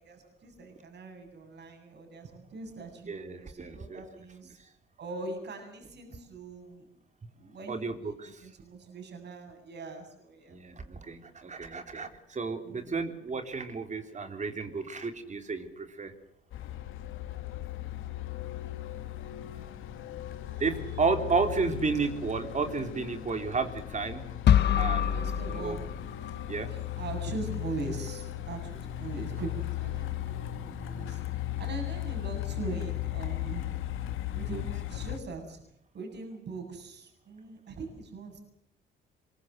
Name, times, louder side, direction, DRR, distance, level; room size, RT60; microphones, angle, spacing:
voice 1, 0.0-4.6 5.0-6.9 7.3-10.6 12.6-13.2 20.3-21.0 25.1-25.8 26.7-33.7 34.3-35.6 35.9-38.4, right 3 dB, 60° right, 5 dB, 7.9 m, -42 dB
voice 2, 3.1-4.0 7.7-8.4 10.5-16.1 20.6-24.2 24.8-25.8 26.5-26.7 34.5-34.6, right 4 dB, 35° right, 7 dB, 3.7 m, -32 dB
Truck, 16.5-35.2, left 13 dB, 85° left, 2.1 m, -37 dB
sound 1, 24.5-26.5, left 10 dB, 60° left, 1.1 m, -25 dB
23.5 x 22.5 x 7.9 m, 0.71 s
cardioid pair, 90°, 20 cm